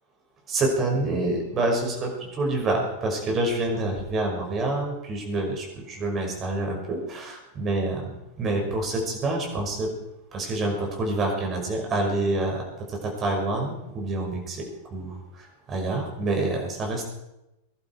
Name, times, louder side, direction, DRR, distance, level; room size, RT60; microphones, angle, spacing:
voice 1, 0.5-8.0 8.4-9.9 10.3-12.6 12.9-17.1, right 2 dB, 25° right, 1 dB, 5.8 m, -27 dB
21.5 x 12.0 x 4.8 m, 0.92 s
figure-of-eight pair, 90°, 0 cm